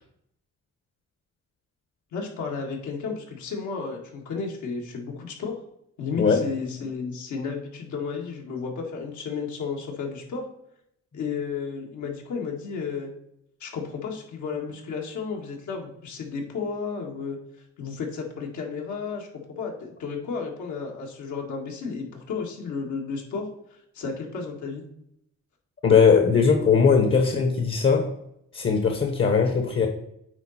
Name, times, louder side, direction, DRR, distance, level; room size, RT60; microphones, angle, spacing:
voice 1, 2.1-5.6 6.0-10.5 11.1-13.1 13.6-17.4 17.8-19.3 19.6-23.5 23.9-24.8, left 5 dB, 75° left, 2.1 m, -33 dB
voice 2, 6.2-6.5 25.8-28.1 28.5-29.9, left 5 dB, 40° left, 1.2 m, -19 dB
9.4 x 4.0 x 4.3 m
cardioid pair, 90°, 30 cm